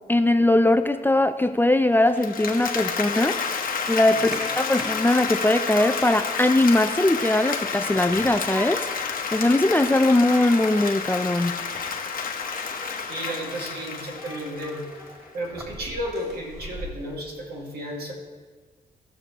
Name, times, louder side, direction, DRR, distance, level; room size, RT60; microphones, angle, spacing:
voice 1, 0.1-3.4 3.9-11.5, left 1 dB, 10° left, 9 dB, 0.4 m, -21 dB
Applause, 2.1-15.1, left 6 dB, 60° left, 1.1 m, -30 dB
Human group actions, 4.3-16.9, equal, 20° right, 2.5 m, -42 dB
voice 2, 13.0-14.9 15.3-18.1, equal, 75° right, -1 dB, 2.1 m, -33 dB
17.0 x 6.2 x 3.0 m, 1.4 s
cardioid pair, 75°, 16 cm